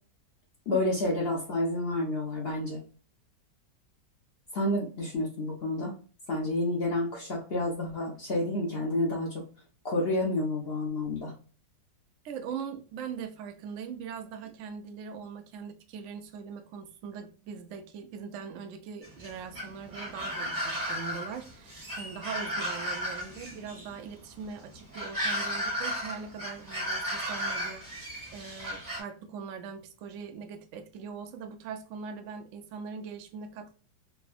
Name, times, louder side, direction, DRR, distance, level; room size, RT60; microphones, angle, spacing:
voice 1, 0.7-2.8 4.5-5.9 6.3-9.4 9.8-11.3, left 1 dB, 55° left, 0.7 m, -29 dB
voice 2, 12.2-33.7, right 6 dB, 85° right, 0.6 m, -41 dB
sound 1, 19.0-29.0, equal, 20° right, 0.6 m, -35 dB
3.4 x 2.0 x 2.3 m
omnidirectional pair, 2.0 m